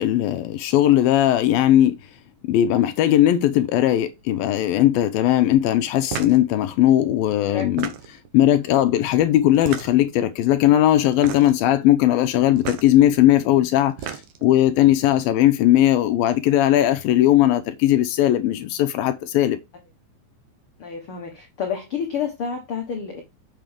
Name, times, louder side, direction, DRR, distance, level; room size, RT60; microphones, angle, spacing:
voice 1, 0.0-2.0 2.4-7.9 8.3-19.6, left 13 dB, 75° left, 2.6 m, -18 dB
sound 1, 6.1-6.4 7.6-8.3 9.5-10.1 11.1-11.6 12.6-12.9 13.8-14.5, right 9 dB, 65° right, 2.2 m, -32 dB
voice 2, 20.8-23.2, left 7 dB, 60° left, 1.4 m, -29 dB
7.7 x 6.6 x 3.4 m
omnidirectional pair, 4.3 m